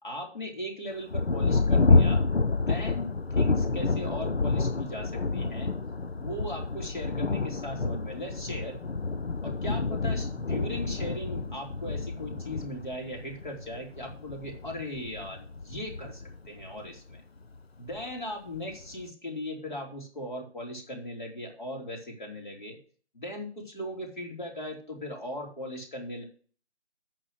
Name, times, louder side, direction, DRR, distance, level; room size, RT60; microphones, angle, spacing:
voice 1, 0.0-2.3 2.5-5.7 6.2-8.8 9.4-17.2 17.8-22.8 23.1-26.2, left 1 dB, 45° left, 0 dB, 3.6 m, -38 dB
Thunder, 1.1-17.2 17.9-18.0 18.6-19.0, left 3 dB, 60° left, 0.8 m, -28 dB
8.5 x 6.1 x 8.0 m, 0.42 s
figure-of-eight pair, 170°, 35 cm